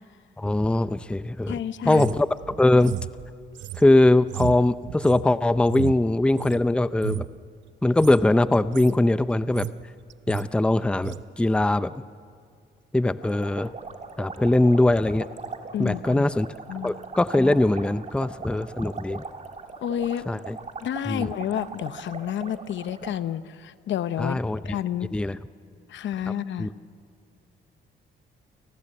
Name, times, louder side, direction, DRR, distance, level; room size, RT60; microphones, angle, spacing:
voice 1, 0.4-1.6 1.8-3.0 3.8-7.3 7.8-9.7 10.3-12.0 12.9-13.7 14.2-15.3 15.8-16.5 16.8-19.2 20.3-20.6 21.1-21.3 24.2-24.8 25.1-25.4 26.6-26.7, left 2 dB, 5° left, 14 dB, 0.6 m, -21 dB
voice 2, 1.5-2.0 15.7-16.2 16.7-16.9 19.8-20.3 20.8-24.4 24.6-25.1 25.9-26.7, left 10 dB, 70° left, 14 dB, 0.8 m, -30 dB
sound 1, 1.9-6.6 6.9-7.4 7.9-8.2 8.5-9.0 9.3-9.8 10.1-10.5 11.0-11.2, right 13 dB, 70° right, 0.7 m, -34 dB
sound 2, 13.2-23.2, right 4 dB, 35° right, 2.0 m, -40 dB
29.0 x 18.5 x 7.7 m, 2.1 s
cardioid pair, 90°, 20 cm